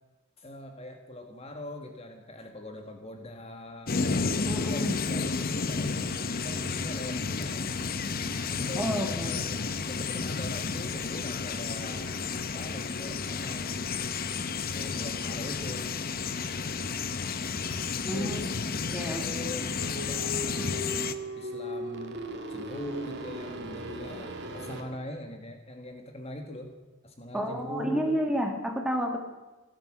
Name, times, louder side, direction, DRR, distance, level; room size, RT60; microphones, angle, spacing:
voice 1, 0.4-3.9 4.3-7.7 8.5-9.6 9.9-13.8 14.7-15.9 17.8-18.5 19.0-20.9 21.4-22.2 22.5-26.7 27.0-28.2, left 1 dB, 30° left, 5 dB, 1.5 m, -42 dB
sound 1, 3.9-21.1, left 4 dB, 45° left, 0.8 m, -31 dB
voice 2, 4.4-5.0 8.8-9.3 18.0-18.6 18.9-19.7 27.3-29.2, equal, 5° right, 2 dB, 2.0 m, -31 dB
sound 2, 19.8-24.8, right 1 dB, 55° right, 1.9 m, -38 dB
16.0 x 12.0 x 7.4 m, 1.1 s
head